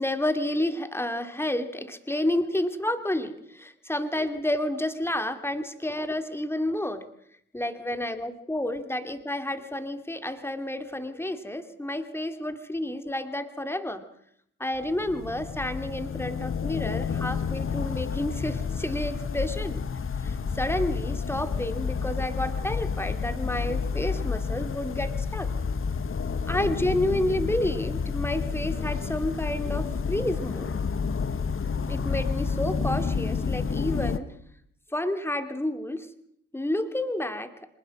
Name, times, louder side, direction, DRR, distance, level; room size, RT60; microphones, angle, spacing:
voice 1, 0.0-7.0 7.5-14.0 14.6-19.8 20.2-25.5 26.5-30.8 31.9-34.3 34.9-36.1 36.5-37.5, left 1 dB, 5° left, 8 dB, 2.8 m, -30 dB
sound 1, 14.8-34.2, left 5 dB, 30° left, 1.6 m, -30 dB
25.5 x 20.0 x 6.2 m, 0.71 s
figure-of-eight pair, 50°, 42 cm